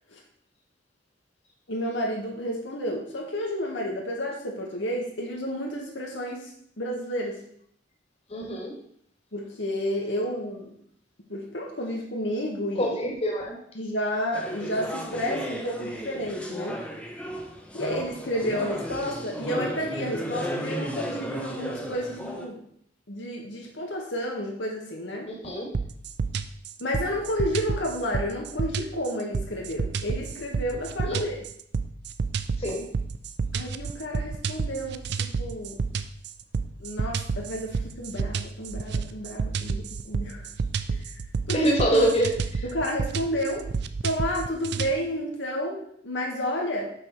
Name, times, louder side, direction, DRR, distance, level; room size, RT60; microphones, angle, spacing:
voice 1, 1.7-6.5 6.8-7.4 9.3-10.7 11.3-12.9 13.8-16.8 17.7-22.6 23.1-25.3 26.8-31.4 33.5-35.8 36.8-40.5 40.9-41.0 41.5-41.7 42.7-43.7 44.0-46.9, equal, 70° left, -1 dB, 1.4 m, -31 dB
voice 2, 8.3-8.8 12.8-13.6 25.3-25.7 31.1-31.2 32.6-32.8 41.5-42.7, right 1 dB, 30° left, -1 dB, 1.9 m, -25 dB
sound 1, 14.3-22.5, equal, 5° left, 0.8 m, -34 dB
sound 2, 25.7-44.9, right 5 dB, 60° right, 0.4 m, -30 dB
6.1 x 4.9 x 6.0 m, 0.67 s
head